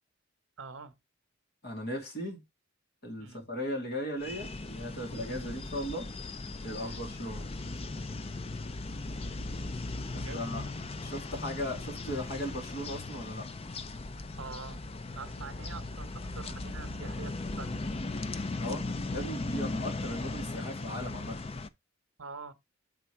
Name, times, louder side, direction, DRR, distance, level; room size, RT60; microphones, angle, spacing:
voice 1, 0.6-0.9 3.2-3.4 6.8-7.0 10.1-10.4 14.4-14.8 15.2-17.8 22.2-22.5, right 5 dB, 70° right, 0.9 m, -45 dB
voice 2, 1.6-2.4 3.0-6.1 6.6-7.5 10.1-10.6 11.0-13.5 18.6-21.4, equal, 50° left, 2.3 m, -37 dB
sound 1, 4.2-21.7, left 2 dB, 30° left, 0.4 m, -38 dB
8.1 x 3.6 x 4.4 m
head